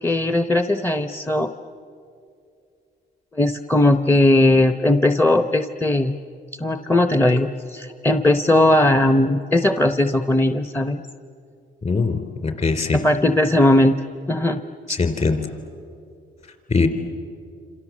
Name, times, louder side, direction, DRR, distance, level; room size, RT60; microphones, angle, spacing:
voice 1, 0.0-1.5 3.3-6.2 6.6-11.0 12.9-13.9 14.3-14.6, left 1 dB, 10° left, 8 dB, 0.8 m, -18 dB
voice 2, 11.8-13.0 14.9-15.5 16.7-16.9, left 4 dB, 35° left, 7 dB, 3.7 m, -21 dB
27.5 x 27.0 x 7.4 m, 2.5 s
cardioid pair, 90°, 20 cm